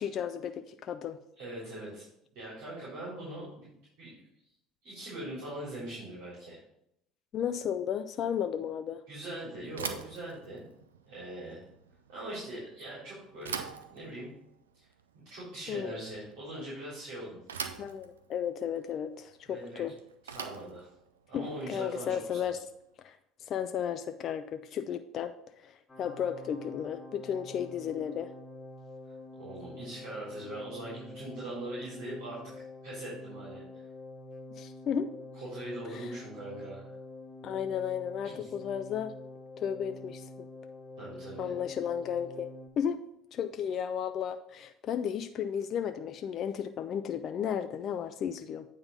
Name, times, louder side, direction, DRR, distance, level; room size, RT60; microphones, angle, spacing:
voice 1, 0.0-1.2 7.3-9.0 15.7-16.1 17.8-20.0 21.3-22.6 23.0-28.3 34.6-35.1 35.9-36.1 37.4-39.1 39.6-40.5 41.4-43.0 43.3-48.7, left 8 dB, 50° left, 8 dB, 0.5 m, -34 dB
voice 2, 1.4-2.1 2.3-4.2 4.8-6.6 9.1-10.6 11.0-11.6 12.1-14.3 14.7-14.8 15.1-17.4 19.5-19.8 20.3-20.9 21.3-22.5 29.4-32.4 32.8-33.6 35.3-36.9 38.2-38.5 41.0-41.5, right 1 dB, 65° right, -7 dB, 3.4 m, -41 dB
Bicycle / Thump thud, 9.7-22.8, right 6 dB, 85° right, 0.5 m, -44 dB
sound 1, 25.9-42.7, left 2 dB, 25° left, 1.5 m, -47 dB
8.9 x 4.0 x 5.3 m, 0.77 s
hypercardioid pair, 65°, 0 cm